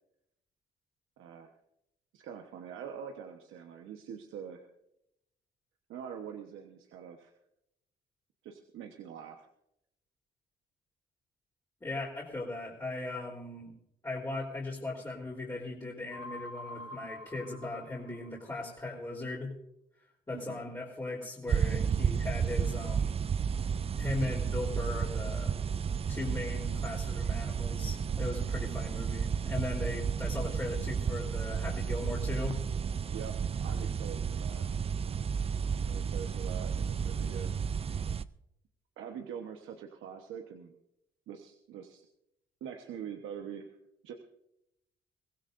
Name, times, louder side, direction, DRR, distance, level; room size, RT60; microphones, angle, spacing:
voice 1, 1.2-1.5 2.1-4.7 5.9-7.3 8.4-9.5 20.3-20.6 21.7-22.0 33.1-34.6 35.8-37.6 39.0-40.7 41.3-42.0 42.6-43.8 44.0-44.1, right 8 dB, 85° right, 4 dB, 1.2 m, -44 dB
voice 2, 11.8-13.7 14.0-19.5 20.3-23.2 24.0-25.5 26.1-32.6, left 2 dB, 15° left, -7 dB, 3.6 m, -38 dB
sound 1, 16.1-18.7, left 1 dB, 60° right, 3.6 m, -46 dB
sound 2, 21.5-38.2, right 6 dB, 30° right, 0.4 m, -32 dB
23.0 x 16.0 x 2.6 m, 0.82 s
cardioid pair, 90°, 20 cm